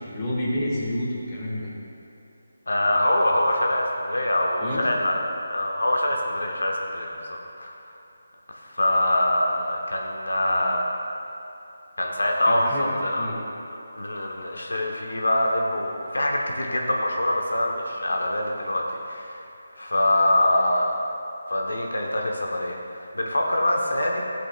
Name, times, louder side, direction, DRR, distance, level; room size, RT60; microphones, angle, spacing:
voice 1, 0.0-1.7 4.6-4.8 12.5-13.4, left 1 dB, 25° left, -6 dB, 1.9 m, -29 dB
voice 2, 2.7-5.2 5.5-7.7 8.5-10.8 12.0-13.3 13.9-19.4 19.8-20.9 21.5-22.8 23.1-24.2, left 1 dB, 85° left, 0 dB, 1.0 m, -24 dB
12.5 x 8.3 x 2.4 m, 2.8 s
figure-of-eight pair, 160°, 0 cm